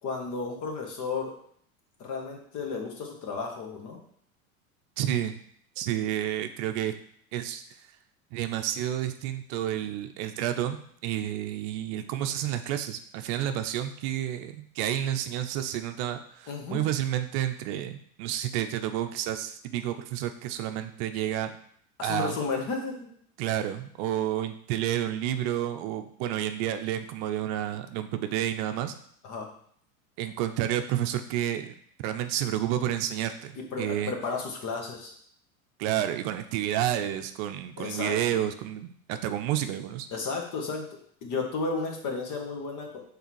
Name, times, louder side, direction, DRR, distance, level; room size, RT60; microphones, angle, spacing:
voice 1, 0.0-1.4 2.0-4.0 16.5-16.8 22.0-23.1 29.2-29.5 33.6-35.1 37.8-38.4 40.1-43.0, left 4 dB, 45° left, 2 dB, 1.7 m, -33 dB
voice 2, 5.0-5.4 5.8-6.9 7.3-7.6 8.3-21.5 22.0-22.4 23.4-28.9 30.2-31.8 32.0-34.1 35.8-40.1, right 11 dB, 50° right, 8 dB, 0.6 m, -30 dB
5.5 x 4.0 x 4.7 m, 0.63 s
hypercardioid pair, 95°, 43 cm